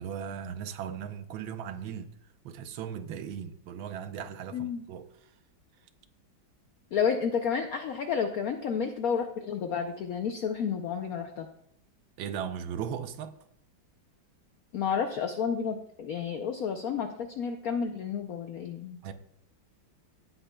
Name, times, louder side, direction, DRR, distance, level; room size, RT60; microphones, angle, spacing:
voice 1, 0.0-2.1 2.4-5.1 12.2-13.3 19.0-19.1, right 8 dB, 80° right, 1.5 m, -37 dB
voice 2, 4.5-4.8 6.9-11.5 14.7-19.0, left 6 dB, 75° left, 0.8 m, -31 dB
16.5 x 8.0 x 2.2 m
omnidirectional pair, 2.2 m